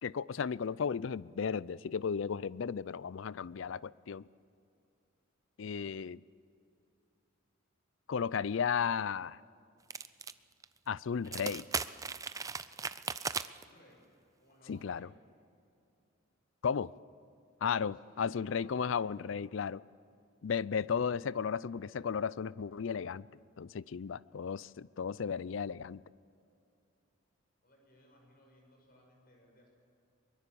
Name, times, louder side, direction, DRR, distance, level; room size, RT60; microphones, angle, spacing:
voice 1, 0.0-4.3 5.6-6.2 8.1-9.4 10.9-11.7 14.7-15.1 16.6-16.9 17.6-19.8 20.4-23.2 23.6-26.0, left 6 dB, 70° left, 0.4 m, -34 dB
sound 1, 9.9-10.3 10.6-10.7 11.2-13.6, right 5 dB, 15° right, 0.4 m, -37 dB
voice 2, 13.4-14.1 14.4-15.1 17.8-19.1 27.6-29.7, left 1 dB, 45° left, 6.4 m, -62 dB
23.5 x 22.0 x 6.9 m
head